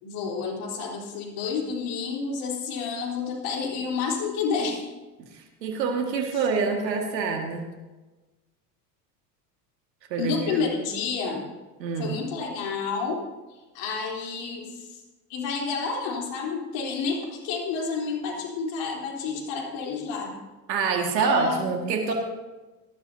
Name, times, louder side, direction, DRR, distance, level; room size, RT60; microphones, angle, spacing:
voice 1, 0.0-4.9 10.2-11.5 12.0-13.2 13.7-15.0 15.3-20.3 21.2-21.7, left 5 dB, 60° left, -1 dB, 3.8 m, -30 dB
voice 2, 5.3-7.6 10.1-10.6 11.8-12.2 20.7-22.1, right 5 dB, 90° right, 2 dB, 2.0 m, -26 dB
18.5 x 12.0 x 2.8 m, 1.2 s
hypercardioid pair, 90°, 49 cm